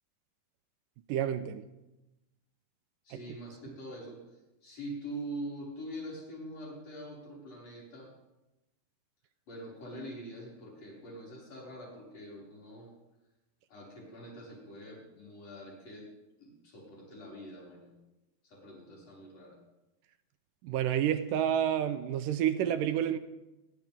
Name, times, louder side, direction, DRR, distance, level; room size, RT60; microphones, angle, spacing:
voice 1, 1.1-1.6 20.6-23.2, right 10 dB, 75° right, 2.2 m, -29 dB
voice 2, 3.0-8.1 9.5-12.9 13.7-16.1 16.4-17.9 18.4-19.6, right 1 dB, 45° left, 6.8 m, -44 dB
27.5 x 13.0 x 3.6 m
omnidirectional pair, 4.2 m